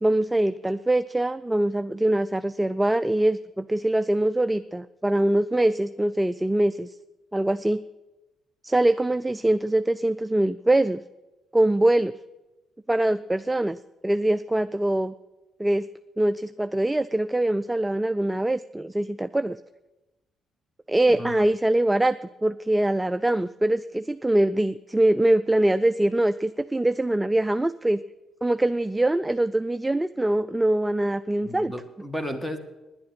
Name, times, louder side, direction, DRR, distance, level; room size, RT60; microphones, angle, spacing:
voice 1, 0.0-6.9 7.3-7.8 8.6-11.0 11.5-12.1 12.9-13.8 14.0-15.1 15.6-15.9 16.2-19.6 20.9-22.2 22.4-28.0 28.4-31.7, right 1 dB, 10° right, 12 dB, 0.3 m, -23 dB
voice 2, 21.1-21.5 31.4-32.6, equal, 5° left, 8 dB, 1.5 m, -34 dB
10.5 x 8.7 x 8.9 m, 1.0 s
cardioid pair, 90°, 0 cm